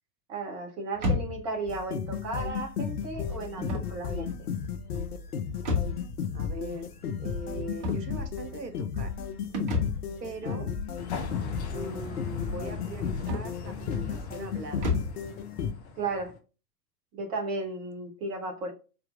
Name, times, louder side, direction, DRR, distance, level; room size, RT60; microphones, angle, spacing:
voice 1, 0.3-4.3 10.4-10.6 16.0-16.3 17.1-18.7, right 3 dB, 10° right, 0.5 m, -34 dB
sound 1, 0.9-15.3, left 3 dB, 35° right, 1.2 m, -35 dB
sound 2, 1.7-15.7, left 7 dB, 65° left, 0.8 m, -34 dB
voice 2, 6.3-6.9 7.2-9.1 10.2-10.7 11.7-14.9, right 2 dB, 75° right, 1.0 m, -41 dB
sound 3, 11.0-16.4, left 4 dB, 40° left, 0.9 m, -40 dB
4.3 x 3.7 x 2.4 m
figure-of-eight pair, 105°, 49 cm